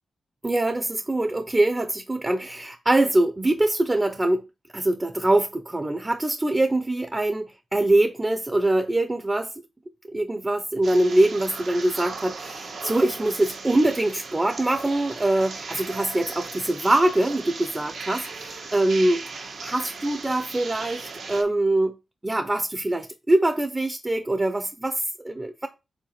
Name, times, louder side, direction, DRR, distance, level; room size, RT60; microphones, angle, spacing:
voice 1, 0.4-4.4 4.7-9.5 10.1-19.2 19.6-21.9 22.2-25.7, right 1 dB, 20° right, 0.8 m, -23 dB
sound 1, 10.8-21.4, right 4 dB, 75° right, 1.7 m, -37 dB
5.1 x 4.0 x 5.8 m
cardioid pair, 85°, 0 cm